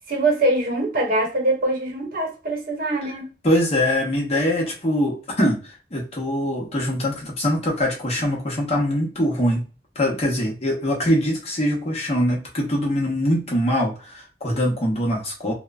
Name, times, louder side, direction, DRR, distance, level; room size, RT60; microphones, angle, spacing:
voice 1, 0.1-3.3, right 2 dB, 55° right, 0.8 m, -23 dB
voice 2, 3.4-9.6 10.0-15.5, equal, 35° left, 0.8 m, -23 dB
2.9 x 2.0 x 2.3 m
head